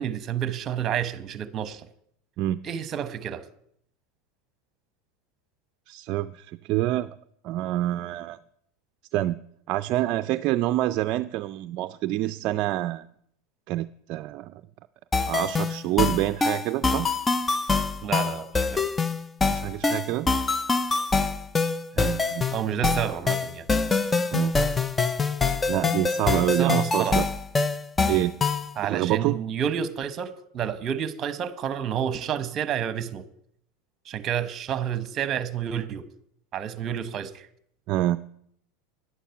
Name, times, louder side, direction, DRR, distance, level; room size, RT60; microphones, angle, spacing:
voice 1, 0.0-1.9 2.6-3.4 18.0-18.9 22.5-23.7 26.5-27.2 28.8-33.3 34.0-36.1 36.5-37.5, right 9 dB, 35° right, 13 dB, 1.0 m, -30 dB
voice 2, 5.9-7.2 7.4-8.4 9.1-9.4 9.7-13.1 13.7-14.6 15.3-17.1 19.5-20.3 22.0-22.5 24.3-24.6 25.7-27.3 28.1-28.4 28.9-29.4 37.9-38.2, right 15 dB, 50° right, 11 dB, 0.4 m, -26 dB
sound 1, 15.1-28.7, left 4 dB, 15° left, 0.5 m, -25 dB
11.0 x 10.0 x 5.8 m, 0.70 s
supercardioid pair, 120°, 0 cm